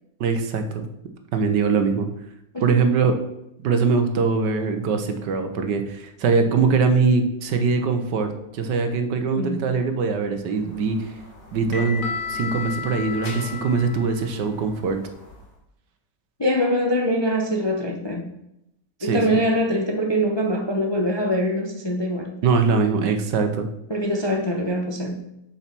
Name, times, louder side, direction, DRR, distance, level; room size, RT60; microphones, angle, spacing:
voice 1, 0.2-0.9 1.3-2.1 2.6-3.1 3.6-11.1 11.5-15.0 19.0-19.2 22.4-23.7, right 4 dB, 70° right, 6 dB, 1.5 m, -22 dB
voice 2, 9.3-9.7 16.4-18.3 19.0-22.4 23.9-25.3, equal, 20° left, 1 dB, 0.7 m, -23 dB
sound 1, 10.6-15.5, left 5 dB, 75° left, 3.0 m, -34 dB
7.0 x 5.8 x 5.9 m, 0.82 s
omnidirectional pair, 2.0 m